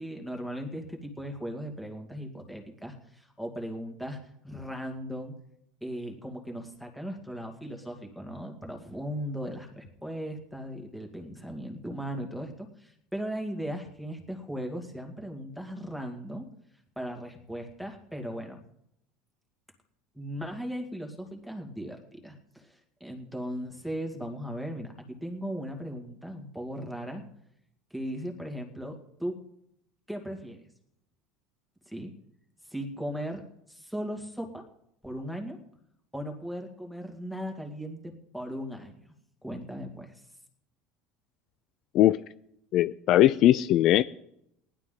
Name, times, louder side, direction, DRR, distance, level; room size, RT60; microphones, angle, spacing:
voice 1, 0.0-4.2 4.4-5.3 5.8-16.5 17.0-18.6 20.1-27.2 27.9-29.4 30.1-30.6 31.9-32.1 32.7-33.4 33.7-34.6 35.0-35.6 36.1-39.0 39.4-40.2, equal, ahead, 2.2 m, -37 dB
voice 2, 42.7-44.0, left 13 dB, 50° left, 0.4 m, -20 dB
19.0 x 11.5 x 3.9 m
cardioid pair, 145°, 0 cm